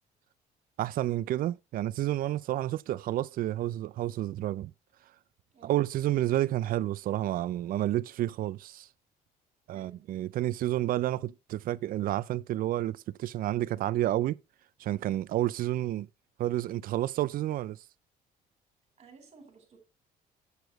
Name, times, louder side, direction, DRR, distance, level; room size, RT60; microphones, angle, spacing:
voice 1, 0.8-4.7 5.6-8.9 9.7-14.4 14.8-16.1 16.4-17.8, right 14 dB, 55° right, 0.4 m, -30 dB
voice 2, 5.5-5.8 9.7-10.1 19.0-19.8, right 4 dB, 35° right, 3.9 m, -55 dB
8.1 x 6.9 x 3.0 m
cardioid pair, 110°, 17 cm